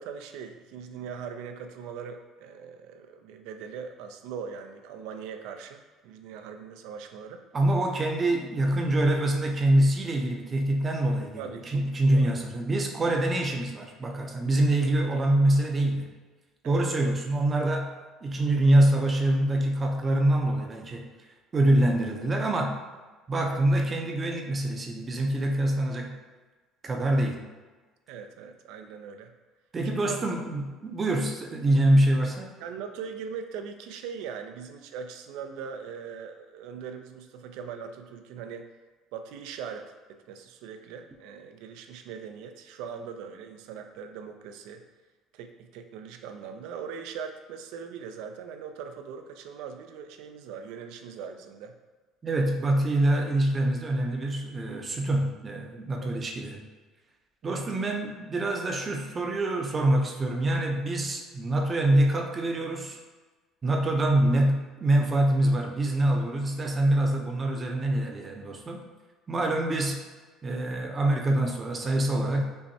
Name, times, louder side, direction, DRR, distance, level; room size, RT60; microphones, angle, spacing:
voice 1, 0.0-7.4 11.4-11.8 12.1-12.3 16.6-17.2 28.1-29.3 29.9-30.3 32.6-38.7 39.1-44.8 45.3-51.7 56.0-56.3 57.4-57.6, right 7 dB, 80° right, 6 dB, 0.4 m, -40 dB
voice 2, 7.5-16.1 16.6-17.9 18.2-21.1 21.5-22.8 23.3-26.2 26.8-27.4 29.7-32.5 52.2-56.6 57.4-63.0 63.6-68.8 69.3-70.0 70.4-72.4, right 1 dB, 30° right, 2 dB, 0.5 m, -25 dB
5.3 x 2.2 x 2.7 m, 1.3 s
cardioid pair, 110°, 0 cm